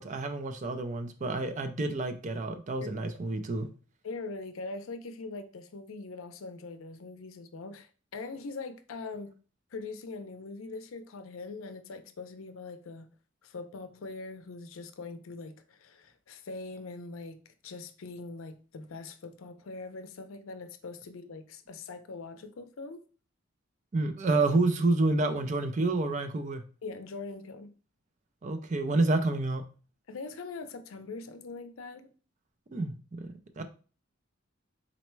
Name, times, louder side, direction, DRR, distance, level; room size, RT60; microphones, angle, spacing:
voice 1, 0.0-3.7 23.9-26.6 28.4-29.6 32.7-33.6, right 2 dB, 35° right, 0.4 m, -29 dB
voice 2, 4.0-9.3 9.7-13.1 13.4-23.0 26.8-27.7 30.1-32.1, left 3 dB, 80° left, 0.5 m, -42 dB
4.0 x 2.1 x 4.4 m
head